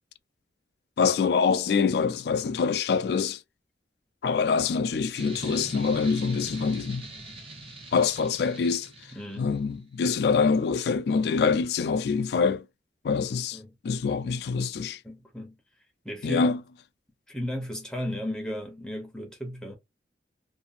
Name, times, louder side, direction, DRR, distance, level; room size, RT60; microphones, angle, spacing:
voice 1, 1.0-3.4 4.2-7.1 7.9-8.9 9.4-12.6 13.0-13.6 13.8-15.0 16.2-16.6, left 5 dB, 65° left, 0.3 m, -25 dB
sound 1, 5.1-9.6, right 2 dB, 30° right, 0.9 m, -42 dB
voice 2, 9.1-9.5 13.5-13.7 15.0-15.5 16.0-16.6 17.3-19.8, left 1 dB, 5° left, 0.6 m, -35 dB
2.5 x 2.5 x 2.5 m
head